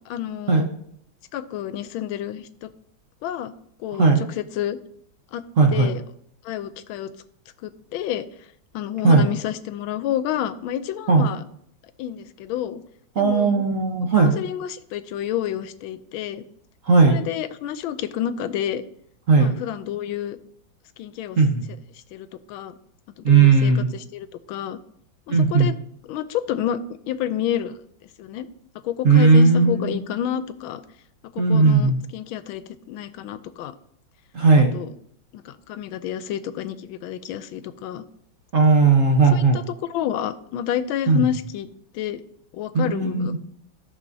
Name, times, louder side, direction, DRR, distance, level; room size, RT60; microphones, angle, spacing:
voice 1, 0.1-0.6 1.3-2.7 3.2-3.5 3.8-4.1 4.4-4.8 5.3-5.4 5.7-6.0 6.4-7.1 7.6-8.2 8.7-11.4 12.0-12.8 13.2-13.6 14.2-16.4 17.1-18.8 19.3-20.4 21.0-21.4 22.1-22.8 23.2-24.8 25.3-25.7 26.1-26.8 27.1-27.8 28.2-28.5 28.8-30.8 31.3-32.6 32.9-33.7 34.7-34.9 35.3-38.0 39.3-41.7 41.9-42.2 42.5-43.4, left 10 dB, 85° left, 13 dB, 1.4 m, -29 dB
voice 2, 5.6-5.9 9.0-9.3 11.1-11.3 13.2-14.3 16.9-17.2 19.3-19.5 21.4-21.6 23.2-23.9 25.3-25.7 29.0-30.0 31.4-32.0 34.3-34.7 38.5-39.6 41.1-41.2 42.7-43.4, right 4 dB, 45° right, 1 dB, 1.2 m, -16 dB
14.5 x 6.0 x 2.7 m, 0.69 s
omnidirectional pair, 2.2 m